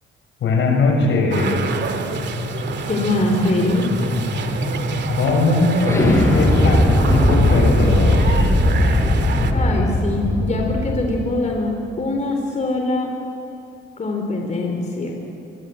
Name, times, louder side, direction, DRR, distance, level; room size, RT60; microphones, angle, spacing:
voice 1, 0.4-1.5 5.1-8.5, left 3 dB, 75° left, 2 dB, 7.2 m, -20 dB
sound 1, 1.3-9.5, right 6 dB, 60° right, 2.3 m, -29 dB
sound 2, 1.6-11.4, left 1 dB, 15° left, 7.0 m, -20 dB
voice 2, 2.9-3.8 9.5-13.1 14.0-15.1, left 2 dB, 35° left, 2 dB, 4.1 m, -23 dB
27.5 x 23.5 x 7.9 m, 2.8 s
cardioid pair, 90°, 20 cm